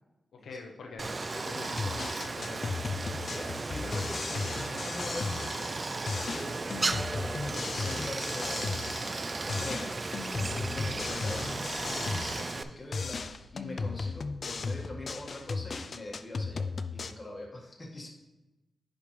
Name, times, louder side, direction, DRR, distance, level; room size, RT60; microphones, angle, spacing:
voice 1, 0.4-2.7, left 3 dB, 85° left, 1 dB, 0.8 m, -44 dB
Stream, 1.0-12.6, right 3 dB, 30° right, 0.3 m, -35 dB
sound 1, 1.6-5.8 6.1-9.2 9.5-12.7 12.9-17.1, left 4 dB, 45° left, 0.4 m, -36 dB
voice 2, 3.3-6.7 7.4-18.1, left 1 dB, 25° left, -2 dB, 1.6 m, -43 dB
sound 2, 10.3-16.3, left 1 dB, ahead, 2.7 m, -59 dB
9.9 x 5.1 x 3.2 m, 1.0 s
wide cardioid pair, 125°, 0 cm